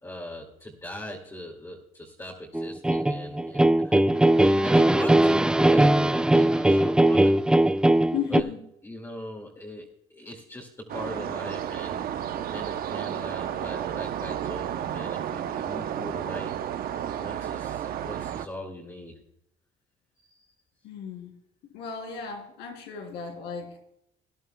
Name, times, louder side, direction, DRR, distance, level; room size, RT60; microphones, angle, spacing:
voice 1, 0.0-4.0 4.3-7.4 8.3-8.5 8.8-9.9 10.1-16.5 16.8-19.2 20.2-20.4, left 1 dB, 15° left, -2 dB, 2.2 m, -40 dB
sound 1, 2.5-8.4, right 1 dB, 5° right, 0.4 m, -20 dB
voice 2, 8.1-8.6 20.8-21.4 21.7-23.8, left 8 dB, 85° left, 3 dB, 3.6 m, -34 dB
sound 2, 10.9-18.5, right 10 dB, 60° right, 0.8 m, -32 dB
19.0 x 11.0 x 2.3 m, 0.78 s
cardioid pair, 110°, 17 cm